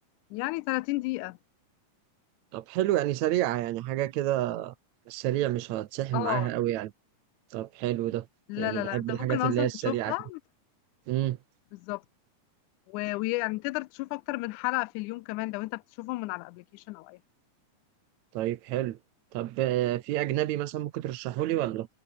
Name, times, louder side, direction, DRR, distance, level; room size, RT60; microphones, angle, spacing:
voice 1, 0.3-1.4 6.1-6.5 8.5-10.4 11.7-12.0 12.9-17.2, left 23 dB, 80° left, 1.9 m, -32 dB
voice 2, 2.5-4.7 5.1-6.9 7.5-8.3 8.6-10.1 11.1-11.4 18.3-19.0 19.3-21.9, right 14 dB, 70° right, 2.1 m, -29 dB
omnidirectional pair, 3.7 m